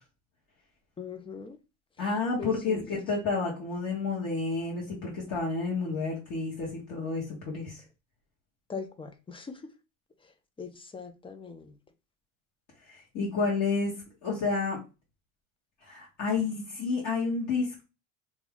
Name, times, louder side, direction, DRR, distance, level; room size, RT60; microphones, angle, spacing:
voice 1, 1.0-1.6 2.4-2.8 8.7-9.7 10.6-11.7, left 5 dB, 15° left, 0.3 m, -40 dB
voice 2, 2.0-7.8 12.9-14.0 14.2-14.8 15.8-17.8, left 4 dB, 50° left, 1.5 m, -30 dB
3.0 x 2.4 x 3.6 m
supercardioid pair, 105°, 38 cm